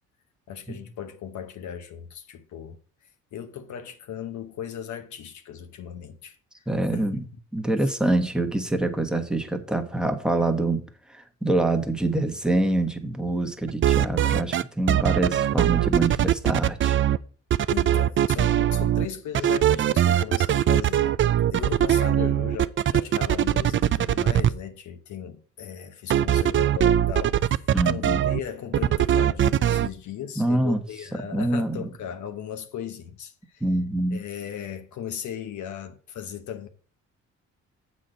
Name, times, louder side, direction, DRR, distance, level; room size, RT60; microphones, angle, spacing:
voice 1, 0.5-2.8 3.3-6.4 6.9-7.3 7.8-7.9 17.7-33.6 34.1-36.7, left 9 dB, 70° left, 1.0 m, -37 dB
voice 2, 6.7-7.3 7.5-10.8 11.1-17.0 27.7-28.2 30.4-30.8 31.1-31.9 33.6-34.2, right 2 dB, ahead, 1.2 m, -25 dB
sound 1, 13.7-14.6 14.9-17.2 17.5-19.1 19.3-24.5 26.1-28.4 28.7-29.9, right 11 dB, 40° right, 0.4 m, -21 dB
7.5 x 4.2 x 6.5 m
cardioid pair, 90°, 30 cm